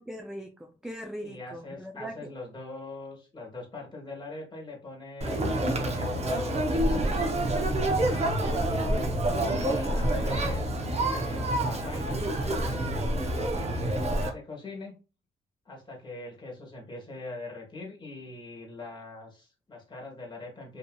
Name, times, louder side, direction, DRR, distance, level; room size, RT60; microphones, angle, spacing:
voice 1, 0.0-2.1, equal, 5° right, 5 dB, 0.3 m, -40 dB
voice 2, 1.2-7.0 7.9-8.6 9.4-12.2 13.5-14.9 15.6-20.8, left 2 dB, 25° left, -1 dB, 1.4 m, -42 dB
Conversation, 5.2-14.3, right 1 dB, 35° right, 0.7 m, -27 dB
2.7 x 2.7 x 2.3 m, 0.33 s
cardioid pair, 90°, 20 cm